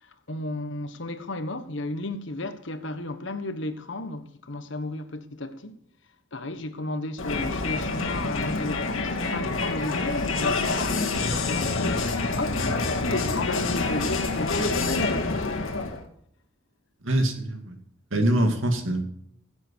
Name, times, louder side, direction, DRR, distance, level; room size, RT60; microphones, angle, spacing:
voice 1, 0.0-5.8 6.3-12.6 13.1-15.8, left 2 dB, 60° left, 1.2 m, -34 dB
Crowd, 7.2-16.0, left 3 dB, 80° left, 2.1 m, -27 dB
voice 2, 17.0-17.8 18.1-19.0, right 1 dB, 75° right, 2.3 m, -24 dB
15.5 x 7.9 x 4.6 m
head